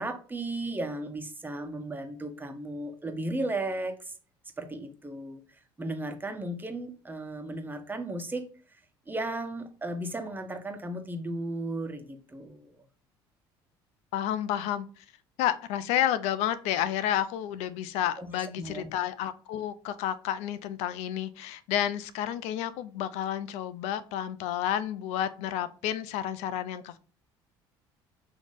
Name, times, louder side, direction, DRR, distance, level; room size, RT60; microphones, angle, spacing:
voice 1, 0.0-4.1 4.6-8.8 9.1-12.8 18.2-18.9, right 2 dB, 15° right, 5 dB, 1.3 m, -35 dB
voice 2, 14.1-14.9 15.4-27.0, left 11 dB, 75° left, 14 dB, 0.5 m, -30 dB
6.3 x 3.2 x 4.9 m, 0.38 s
supercardioid pair, 75°, 11 cm